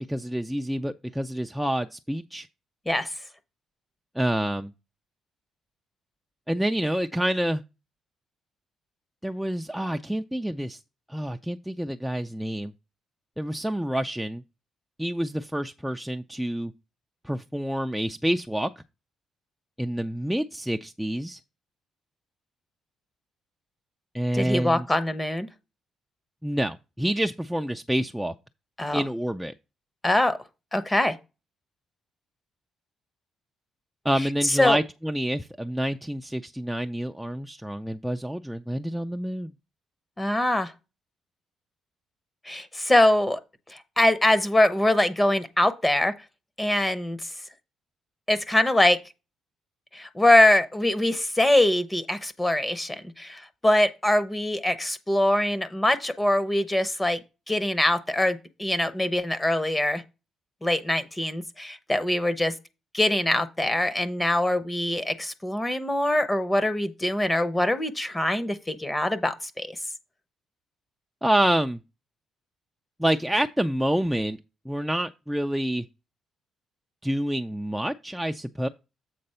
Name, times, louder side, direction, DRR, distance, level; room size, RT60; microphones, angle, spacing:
voice 1, 0.0-2.5 4.1-4.7 6.5-7.6 9.2-10.8 11.1-12.7 13.4-14.4 15.0-16.7 17.2-18.7 19.8-21.4 24.1-24.9 26.4-28.3 28.9-29.5 34.0-39.5 71.2-71.8 73.0-74.4 74.7-75.8 77.0-78.7, right 1 dB, ahead, 0.4 m, -27 dB
voice 2, 24.3-25.5 28.8-29.0 30.0-30.4 30.7-31.2 34.4-34.8 40.2-40.7 42.5-43.4 43.7-46.1 46.6-47.3 48.3-49.0 49.9-57.2 57.5-60.0 60.6-62.5 62.9-69.8, left 1 dB, 15° left, 0.9 m, -23 dB
7.7 x 4.0 x 5.5 m
cardioid pair, 90°, 0 cm